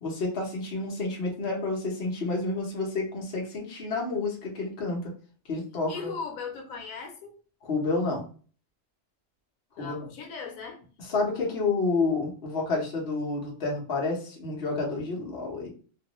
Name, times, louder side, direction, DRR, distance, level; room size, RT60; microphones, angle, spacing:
voice 1, 0.0-5.1 5.5-6.1 7.6-8.2 9.8-10.0 11.0-15.7, left 3 dB, 55° left, -2 dB, 1.1 m, -29 dB
voice 2, 5.9-7.3 9.8-10.8, left 5 dB, 90° left, 2 dB, 1.1 m, -38 dB
3.0 x 2.5 x 2.9 m, 0.40 s
omnidirectional pair, 1.3 m